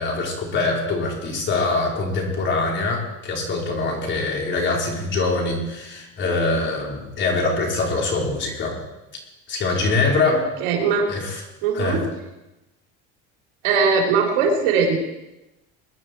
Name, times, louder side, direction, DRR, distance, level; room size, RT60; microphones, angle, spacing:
voice 1, 0.0-8.8 9.5-10.5 11.1-11.4 11.7-12.0, left 3 dB, 40° left, 0 dB, 4.4 m, -23 dB
voice 2, 10.6-11.1 11.6-12.0 13.6-15.0, right 5 dB, 80° right, 0 dB, 3.6 m, -20 dB
21.0 x 11.0 x 4.6 m, 0.98 s
supercardioid pair, 115°, 29 cm